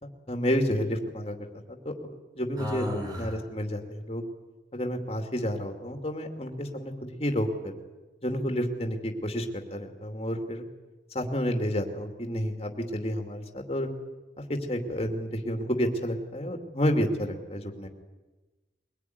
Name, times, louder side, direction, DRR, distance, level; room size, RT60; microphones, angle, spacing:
voice 1, 0.0-1.4 1.8-4.2 4.7-7.7 8.2-10.6 11.1-13.9 14.5-17.9, equal, 35° left, 4 dB, 2.6 m, -30 dB
voice 2, 2.6-3.4, left 1 dB, 20° right, 1 dB, 6.0 m, -33 dB
23.0 x 20.0 x 9.5 m, 1.2 s
head